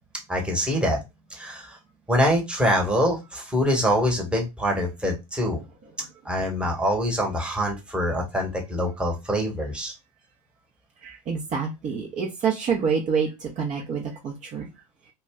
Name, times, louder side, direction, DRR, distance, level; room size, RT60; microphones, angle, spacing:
voice 1, 0.3-1.0 1.3-1.8 2.1-5.6 6.2-9.9, equal, 5° right, 1.1 m, -24 dB
voice 2, 11.0-14.7, right 6 dB, 40° right, 0.7 m, -27 dB
2.3 x 2.2 x 3.5 m
hypercardioid pair, 80°, 20 cm